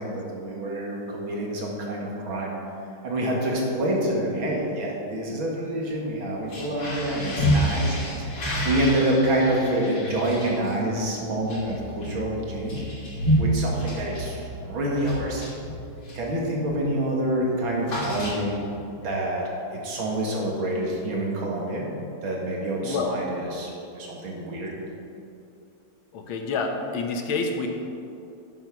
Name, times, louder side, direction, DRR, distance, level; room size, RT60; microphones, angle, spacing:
voice 1, 0.0-2.5 3.0-12.8 13.4-15.4 16.1-18.6 18.9-19.4 19.8-21.9 22.2-24.7, right 1 dB, 70° right, -2 dB, 2.7 m, -27 dB
sound 1, 6.4-16.3 16.7-17.0 17.2-18.8, equal, 50° left, 3.6 m, -29 dB
voice 2, 22.8-23.2 26.1-27.7, left 4 dB, 75° left, 3 dB, 1.9 m, -28 dB
11.0 x 7.8 x 5.9 m, 2.7 s
omnidirectional pair, 2.3 m